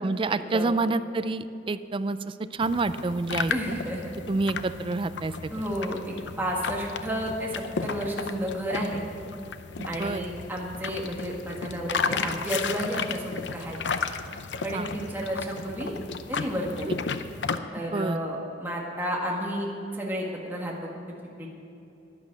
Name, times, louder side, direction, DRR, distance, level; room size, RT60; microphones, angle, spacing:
voice 1, 0.0-3.8 4.3-5.5 9.8-10.2 14.7-14.9 16.9-17.0 17.8-18.2, right 3 dB, 30° right, 13 dB, 0.4 m, -28 dB
sound 1, 2.6-17.6, left 5 dB, 80° left, 0.6 m, -34 dB
voice 2, 3.5-4.1 5.5-7.5 7.8-9.0 9.8-14.0 14.6-15.9 16.3-17.0 17.7-19.7 19.9-20.9 21.4-21.5, equal, 10° right, -2 dB, 1.6 m, -31 dB
11.5 x 10.5 x 7.3 m, 2.7 s
head